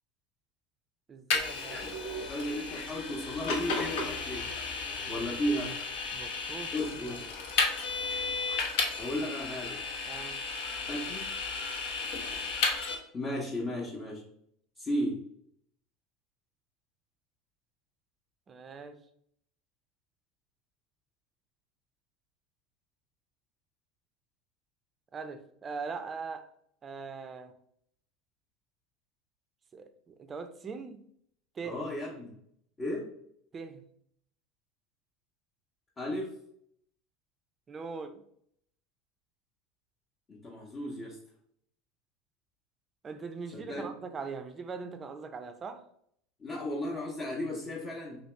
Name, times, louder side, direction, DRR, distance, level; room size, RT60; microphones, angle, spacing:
voice 1, 1.1-1.8 6.1-6.7 10.1-10.4 18.5-19.0 25.1-26.5 26.8-27.5 29.7-31.0 31.6-31.8 33.5-33.8 37.7-38.1 43.0-45.8, right 5 dB, 30° right, 0.5 m, -41 dB
Vehicle, 1.3-13.0, left 4 dB, 70° left, 0.8 m, -33 dB
voice 2, 1.7-4.5 5.1-5.7 6.7-7.3 9.0-9.8 10.9-11.3 13.1-14.2 14.8-15.2 31.6-32.4 32.8-33.1 36.0-36.4 40.3-41.2 43.5-43.9 46.4-48.2, left 1 dB, 30° left, 0.8 m, -35 dB
3.0 x 2.7 x 3.2 m
hypercardioid pair, 95°, 0 cm